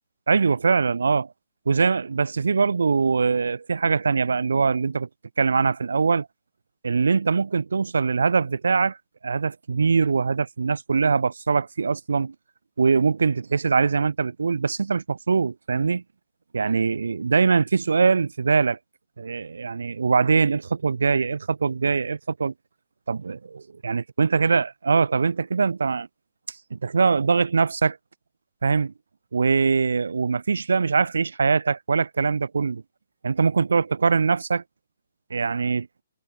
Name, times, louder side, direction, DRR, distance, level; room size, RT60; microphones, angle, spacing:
voice 1, 0.3-1.3 1.7-5.1 5.4-6.3 6.8-9.0 9.2-12.3 12.8-16.0 16.5-18.8 19.2-22.5 23.1-26.1 26.7-28.0 28.6-28.9 29.3-32.8 33.2-34.6 35.3-35.9, right 5 dB, 85° right, 5.0 m, -22 dB
hypercardioid pair, 180°, 0 cm